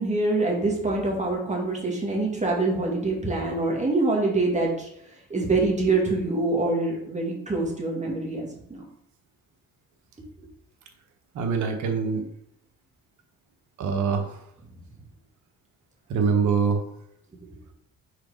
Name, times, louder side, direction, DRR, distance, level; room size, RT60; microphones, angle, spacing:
voice 1, 0.0-4.9 5.3-8.8, right 2 dB, 25° right, -1 dB, 1.9 m, -25 dB
voice 2, 11.3-12.3 13.8-14.4 16.1-16.8, right 5 dB, 75° right, 4 dB, 1.1 m, -24 dB
4.9 x 3.9 x 4.9 m, 0.73 s
cardioid pair, 90°, 30 cm